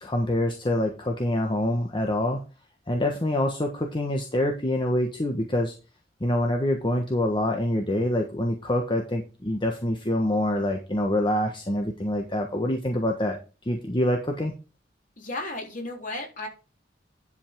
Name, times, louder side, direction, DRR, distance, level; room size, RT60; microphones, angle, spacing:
voice 1, 0.0-2.4 2.9-5.7 6.2-13.4 13.6-14.5, left 1 dB, 30° left, 3 dB, 1.3 m, -26 dB
voice 2, 15.2-16.5, left 2 dB, 45° left, 1 dB, 3.9 m, -34 dB
11.0 x 5.5 x 4.6 m, 0.32 s
head